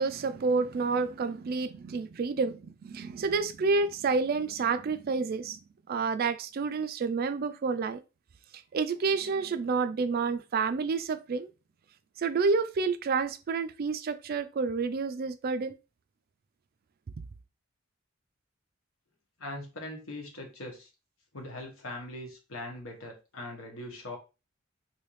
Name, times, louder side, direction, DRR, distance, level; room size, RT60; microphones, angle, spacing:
voice 1, 0.0-5.6 5.9-8.0 8.5-11.5 12.2-15.8, right 4 dB, 45° right, 0.3 m, -29 dB
voice 2, 19.4-20.9 21.3-24.2, left 1 dB, 80° left, 1.2 m, -41 dB
3.3 x 2.7 x 3.1 m
head